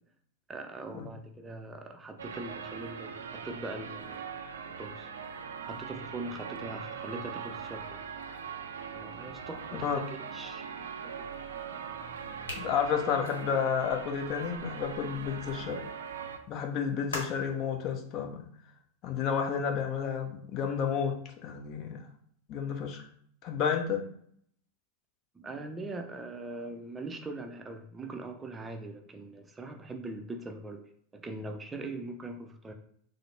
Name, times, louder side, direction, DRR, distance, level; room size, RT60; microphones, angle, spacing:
voice 1, 0.5-4.3 4.7-5.1 5.6-8.0 8.9-10.7 11.0-11.3 25.3-32.7, right 2 dB, 15° right, 5 dB, 0.5 m, -41 dB
sound 1, 2.2-16.4, right 6 dB, 80° right, 0.4 m, -41 dB
sound 2, 12.4-15.7 17.1-17.6, left 2 dB, 80° left, 1.1 m, -43 dB
voice 2, 12.5-15.8 16.5-18.5 19.0-21.1 21.4-22.0 22.5-23.0 23.4-24.0, left 7 dB, 45° left, 4 dB, 0.7 m, -31 dB
4.1 x 2.0 x 3.2 m, 0.64 s
hypercardioid pair, 95°, 0 cm